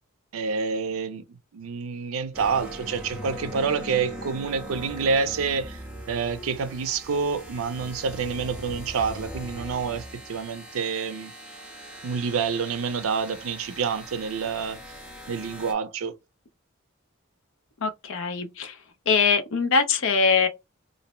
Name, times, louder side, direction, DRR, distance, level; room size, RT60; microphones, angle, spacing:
voice 1, 0.3-1.2 1.5-5.8 6.1-11.3 12.0-14.8 15.3-16.2, right 5 dB, 75° right, 0.4 m, -28 dB
sound 1, 2.3-15.7, equal, 5° right, 0.6 m, -40 dB
voice 2, 17.8-18.7 19.1-20.5, left 5 dB, 65° left, 0.5 m, -22 dB
2.5 x 2.0 x 2.9 m
head